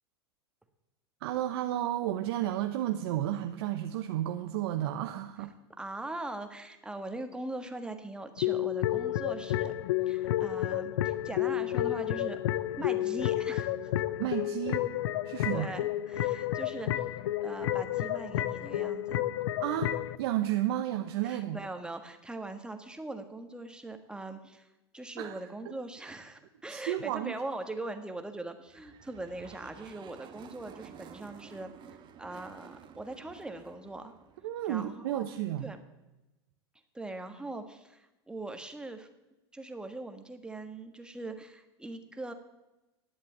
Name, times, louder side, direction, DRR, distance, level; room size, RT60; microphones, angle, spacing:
voice 1, 1.2-5.5 14.2-14.8 15.2-15.7 19.6-19.9 20.2-21.6 25.2-25.4 26.7-27.3 34.4-35.7, right 12 dB, 70° right, 6 dB, 0.9 m, -32 dB
voice 2, 5.8-9.7 10.1-13.9 15.5-19.2 21.2-34.1 34.7-35.2 35.6-35.8 36.9-39.1 39.5-42.3, right 2 dB, 5° right, 7 dB, 1.5 m, -41 dB
sound 1, 8.4-20.2, left 13 dB, 75° left, 0.6 m, -31 dB
sound 2, 28.7-35.1, right 8 dB, 35° right, 1.3 m, -52 dB
11.0 x 8.2 x 8.7 m, 1.0 s
supercardioid pair, 115°, 14 cm